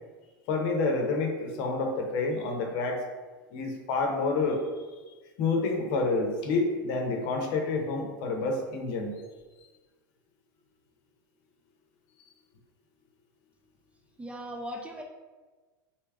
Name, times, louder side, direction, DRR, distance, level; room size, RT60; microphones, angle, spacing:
voice 1, 0.5-3.0 3.5-4.6 5.4-9.2, left 3 dB, 50° left, 2 dB, 0.8 m, -28 dB
voice 2, 14.2-15.0, equal, 10° right, 1 dB, 0.4 m, -38 dB
3.3 x 2.8 x 3.5 m, 1.3 s
hypercardioid pair, 90°, 11 cm